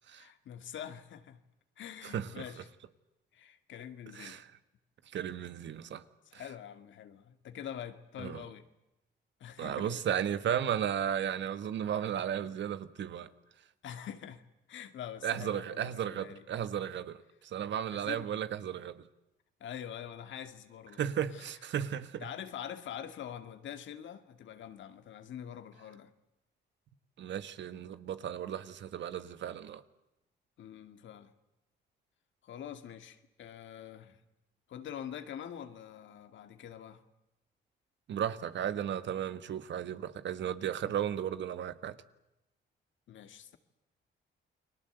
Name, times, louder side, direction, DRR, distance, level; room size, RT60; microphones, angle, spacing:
voice 1, 0.1-1.4 1.8-2.7 3.3-4.4 6.3-8.6 9.4-10.0 13.8-14.4 14.7-16.4 17.9-18.3 19.6-21.0 21.3-21.4 22.2-26.1 30.6-31.3 32.4-34.2 34.7-37.0 43.1-43.6, left 9 dB, 70° left, 2.2 m, -45 dB
voice 2, 2.0-2.4 4.1-4.5 5.1-6.0 6.3-6.5 8.2-8.4 9.6-13.3 15.2-19.0 20.9-22.3 27.2-29.8 38.1-42.0, right 9 dB, 65° right, 1.6 m, -35 dB
29.5 x 21.5 x 8.0 m
cardioid pair, 90°, 20 cm